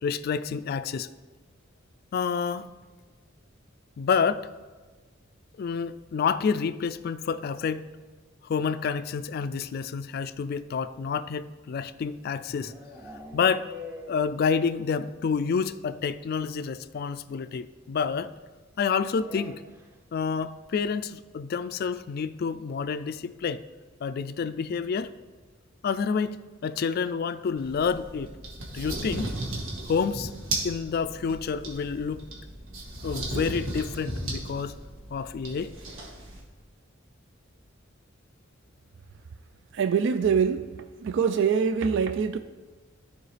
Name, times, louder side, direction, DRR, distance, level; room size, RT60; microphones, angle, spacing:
voice 1, 0.0-1.1 2.1-2.7 4.0-4.5 5.6-7.9 8.4-12.7 13.3-13.7 14.1-18.3 18.8-19.6 20.1-23.6 24.0-25.1 25.8-28.3 28.7-29.3 29.8-30.3 30.6-32.3 33.0-34.8 35.1-35.7, left 6 dB, 50° left, 13 dB, 0.3 m, -28 dB
sound 1, 12.1-15.0 15.2-15.3 15.6-15.7 16.0-16.1 17.4-17.5 19.2-20.0, left 1 dB, 10° right, 0.7 m, -44 dB
sound 2, 27.6-36.4, right 1 dB, 85° right, 1.7 m, -36 dB
voice 2, 39.7-40.7 41.0-42.4, right 6 dB, 65° right, 10 dB, 0.3 m, -24 dB
13.5 x 4.8 x 3.3 m, 1.3 s
head